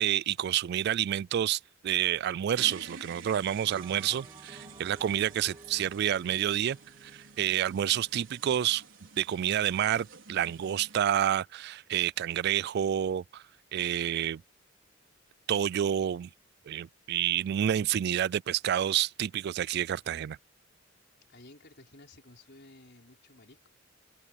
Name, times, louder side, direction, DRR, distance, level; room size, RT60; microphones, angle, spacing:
voice 1, 0.0-8.8 9.2-13.4 13.7-14.4 15.5-16.3 16.7-20.4, right 10 dB, 55° right, 0.3 m, -29 dB
sound 1, 2.5-11.0, right 5 dB, 70° right, 4.8 m, -50 dB
Bell, 3.7-8.3, right 2 dB, 25° right, 2.2 m, -54 dB
voice 2, 21.3-23.7, left 2 dB, 60° left, 4.5 m, -54 dB
open air
head